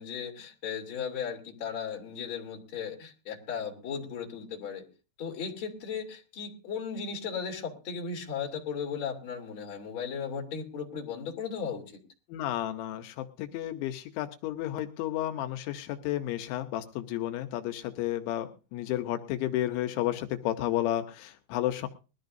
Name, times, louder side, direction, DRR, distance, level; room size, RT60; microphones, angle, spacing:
voice 1, 0.0-4.8 5.2-12.0, left 6 dB, 30° left, 2 dB, 3.1 m, -36 dB
voice 2, 12.3-21.9, left 13 dB, 85° left, 7 dB, 3.2 m, -32 dB
21.0 x 14.0 x 2.6 m, 0.34 s
omnidirectional pair, 5.3 m